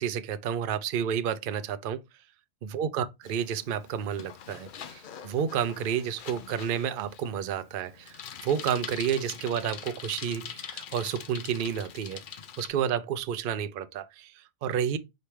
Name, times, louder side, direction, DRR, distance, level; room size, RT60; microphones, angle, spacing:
voice 1, 0.0-2.0 2.6-15.0, right 8 dB, 65° right, 0.5 m, -31 dB
Bicycle, 3.2-12.7, left 8 dB, 65° left, 0.5 m, -44 dB
5.1 x 3.2 x 3.1 m
omnidirectional pair, 1.4 m